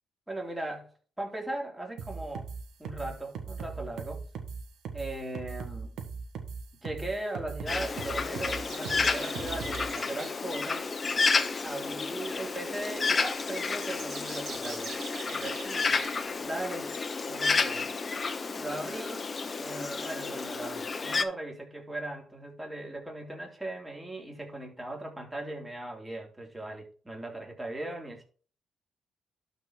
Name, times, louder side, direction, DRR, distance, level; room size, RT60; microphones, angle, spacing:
voice 1, 0.3-0.9 1.2-2.5 2.8-4.2 4.9-6.0 6.8-10.8 11.6-14.9 15.2-16.0 16.4-16.9 17.2-17.9 18.6-19.3 19.6-28.2, right 1 dB, 10° right, 3.3 m, -38 dB
sound 1, 2.0-9.9, right 5 dB, 80° right, 1.6 m, -39 dB
Bird, 7.7-21.2, left 4 dB, 35° left, 0.9 m, -31 dB
sound 2, 8.7-10.3 13.6-16.1, right 5 dB, 60° right, 2.4 m, -43 dB
12.0 x 4.3 x 4.6 m
cardioid pair, 90°, 0 cm